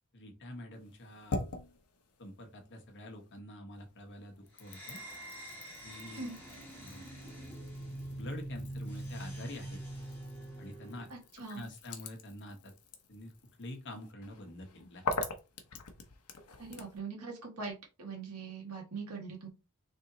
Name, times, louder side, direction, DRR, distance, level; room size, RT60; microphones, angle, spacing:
voice 1, 0.1-1.4 2.2-5.0 5.8-6.2 6.8-7.0 8.1-9.8 10.6-11.1 11.5-12.7 13.1-13.3 13.6-15.0, left 1 dB, 55° left, 3 dB, 1.1 m, -46 dB
sound 1, 0.7-3.4 3.7-17.0, left 2 dB, 75° left, 0.8 m, -44 dB
sound 2, 4.6-11.2, right 1 dB, 10° left, 1.5 m, -44 dB
voice 2, 11.1-11.7 16.6-19.5, right 4 dB, 80° right, 0 dB, 1.6 m, -42 dB
3.5 x 2.9 x 3.8 m, 0.29 s
head